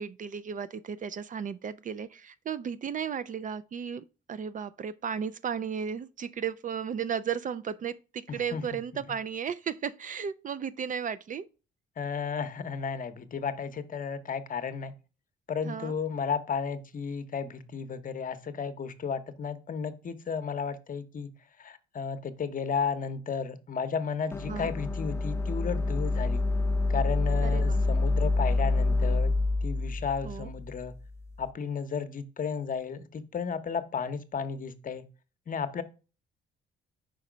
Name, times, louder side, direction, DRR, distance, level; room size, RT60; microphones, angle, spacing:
voice 1, 0.0-11.5 15.6-15.9 24.5-24.7 27.4-27.8 30.2-30.5, right 7 dB, 40° right, 0.4 m, -35 dB
voice 2, 8.3-8.6 8.9-9.0 12.0-14.9 15.5-21.3 21.6-26.4 26.9-29.3 29.6-30.9 31.4-35.0 35.5-35.8, left 6 dB, 45° left, 0.8 m, -33 dB
sound 1, 24.3-31.4, left 2 dB, 10° left, 0.7 m, -27 dB
5.2 x 4.3 x 5.0 m
cardioid pair, 90°, 20 cm